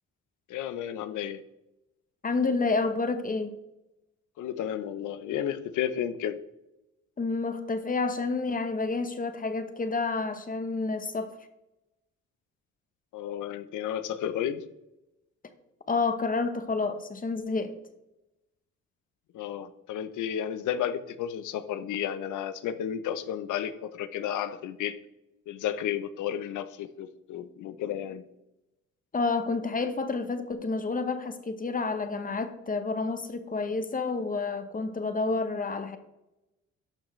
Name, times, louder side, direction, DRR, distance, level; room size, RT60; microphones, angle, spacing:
voice 1, 0.5-1.4 4.4-6.4 13.1-14.6 19.3-25.0 25.5-28.2, left 10 dB, 80° left, 0.7 m, -32 dB
voice 2, 2.2-3.5 7.2-11.3 15.9-17.8 29.1-36.0, left 3 dB, 30° left, 1.0 m, -29 dB
11.5 x 6.3 x 3.2 m
cardioid pair, 90°, 30 cm